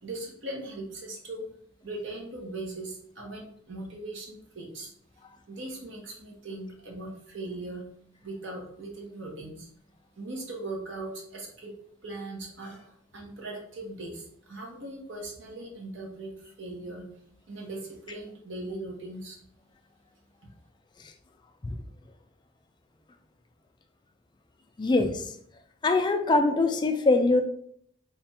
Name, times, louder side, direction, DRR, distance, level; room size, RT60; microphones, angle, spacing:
voice 1, 0.0-1.5 1.8-4.9 5.5-7.8 8.2-9.7 10.2-17.0 17.5-19.4, right 2 dB, 75° right, 0 dB, 1.0 m, -39 dB
voice 2, 24.8-25.3 25.8-27.4, left 3 dB, 25° left, 6 dB, 0.3 m, -23 dB
3.3 x 2.3 x 4.2 m, 0.66 s
head